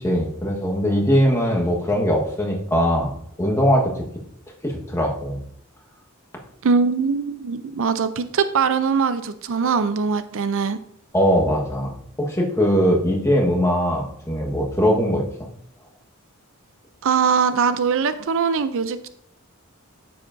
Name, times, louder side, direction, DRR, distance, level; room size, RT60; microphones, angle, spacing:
voice 1, 0.0-3.1 3.4-4.1 4.6-5.4 11.1-15.2, equal, 15° left, -1 dB, 1.3 m, -20 dB
voice 2, 6.6-10.8 17.0-19.1, right 5 dB, 65° right, 12 dB, 0.5 m, -21 dB
9.3 x 7.7 x 2.6 m, 0.69 s
head